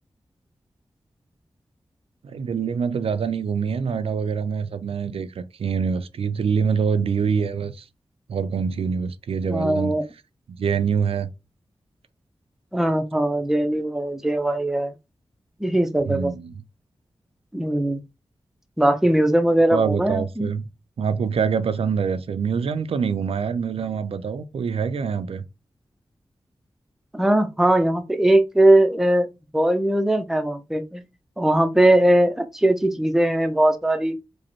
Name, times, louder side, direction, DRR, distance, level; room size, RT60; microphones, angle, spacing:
voice 1, 2.2-7.8 8.3-10.0 10.6-11.3 16.1-16.5 19.7-20.7 21.0-25.4, right 6 dB, 90° right, 0.4 m, -25 dB
voice 2, 9.5-10.0 12.7-14.9 15.6-16.3 17.5-18.0 18.8-20.5 27.1-29.3 29.5-31.0 31.4-34.2, right 1 dB, 5° right, 0.4 m, -20 dB
5.0 x 2.0 x 3.0 m
wide cardioid pair, 120°, 10 cm